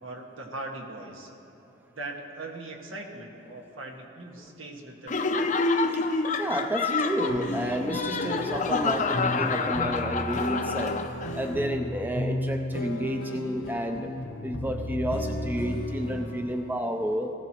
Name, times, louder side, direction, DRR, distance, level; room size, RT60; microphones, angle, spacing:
voice 1, 0.0-1.3 1.9-5.6, right 2 dB, 85° right, 0 dB, 1.6 m, -40 dB
Laughter, 5.1-11.4, left 3 dB, 40° left, 0.5 m, -28 dB
voice 2, 6.4-11.0 11.3-14.1 14.4-17.3, equal, 10° right, 4 dB, 0.5 m, -30 dB
sound 1, 7.3-16.8, left 1 dB, 85° left, 1.1 m, -34 dB
19.5 x 14.5 x 3.0 m, 2.9 s
head